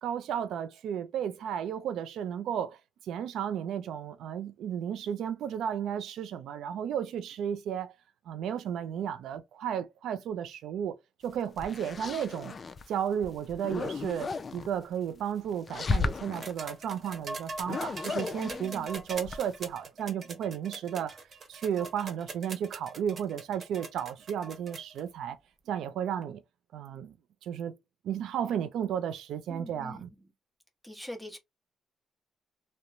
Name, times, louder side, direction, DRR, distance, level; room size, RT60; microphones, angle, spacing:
voice 1, 0.0-2.8 3.0-7.9 8.3-11.0 11.2-12.5 12.9-21.2 21.5-25.4 25.7-26.4 26.7-27.1 27.4-27.8 28.0-30.1, right 9 dB, 80° right, 0.3 m, -33 dB
sound 1, 11.3-12.8 13.2-14.7 15.5-16.5 17.6-19.7, left 4 dB, 40° left, 0.4 m, -34 dB
sound 2, 16.3-25.0 26.2-26.3, right 3 dB, 45° right, 1.0 m, -42 dB
voice 2, 18.4-18.9 29.5-30.3 30.8-31.4, left 1 dB, ahead, 1.0 m, -44 dB
2.9 x 2.0 x 2.5 m
cardioid pair, 90°, 0 cm